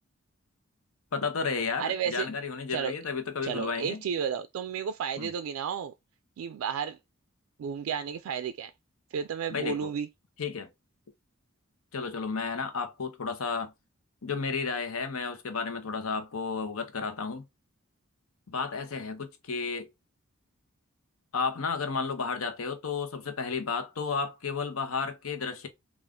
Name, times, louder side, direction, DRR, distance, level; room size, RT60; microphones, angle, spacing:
voice 1, 1.1-4.0 5.2-5.3 9.5-9.9 10.4-10.7 11.9-13.7 14.2-17.4 18.5-19.9 21.3-25.7, left 5 dB, 90° left, 0.8 m, -32 dB
voice 2, 1.8-2.3 2.7-2.9 3.4-5.9 6.4-7.0 7.6-8.7 9.1-10.1, right 7 dB, 85° right, 0.3 m, -32 dB
3.5 x 2.4 x 3.6 m
head